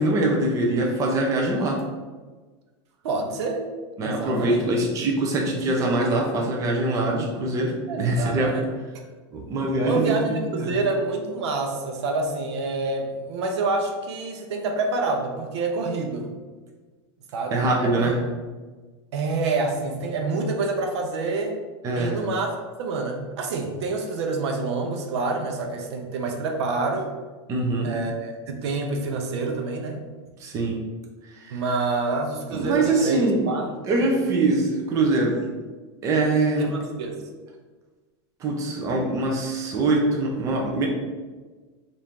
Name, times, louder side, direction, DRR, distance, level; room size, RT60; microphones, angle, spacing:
voice 1, 0.0-1.8 4.0-8.5 9.3-10.8 17.5-18.2 21.8-22.2 27.5-27.9 30.4-30.8 31.3-31.6 32.5-33.4 33.9-35.4 36.0-36.7 38.4-40.9, right 2 dB, 20° right, 0 dB, 0.5 m, -23 dB
voice 2, 3.0-3.6 4.0-4.6 7.9-8.6 9.8-16.3 17.3-18.1 19.1-21.5 22.0-22.5 22.8-27.1 27.8-30.1 31.5-33.6 34.0-34.1 36.6-37.2, right 3 dB, 70° right, 3 dB, 0.7 m, -27 dB
4.2 x 2.6 x 3.5 m, 1.3 s
supercardioid pair, 150°, 15 cm